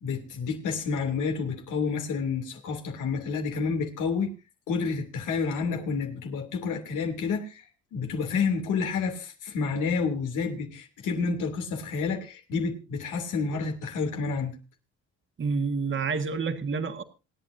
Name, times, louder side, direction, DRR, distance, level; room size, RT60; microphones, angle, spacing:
voice 1, 0.0-4.3 4.7-7.6 7.9-14.6, left 5 dB, 85° left, 3.0 m, -29 dB
voice 2, 15.4-17.0, right 5 dB, 40° right, 1.8 m, -28 dB
27.0 x 9.0 x 2.7 m
cardioid pair, 90°, 30 cm